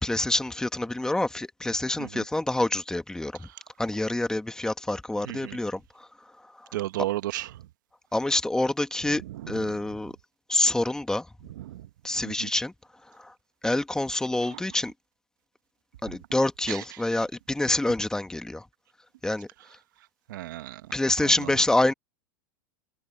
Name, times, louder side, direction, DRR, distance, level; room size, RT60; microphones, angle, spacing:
voice 1, 0.0-3.5 3.8-6.1 6.4-6.8 8.1-10.1 10.5-11.3 12.0-12.7 13.1-13.3 13.6-14.9 16.0-18.6 19.2-19.5 20.9-21.9, left 1 dB, 5° left, 1.8 m, -27 dB
voice 2, 5.3-5.6 6.7-7.5 9.3-9.4 11.6-11.9 12.2-12.5 16.7-16.8 20.3-20.8 21.2-21.3, right 15 dB, 70° right, 1.4 m, -33 dB
hypercardioid pair, 105°, 11 cm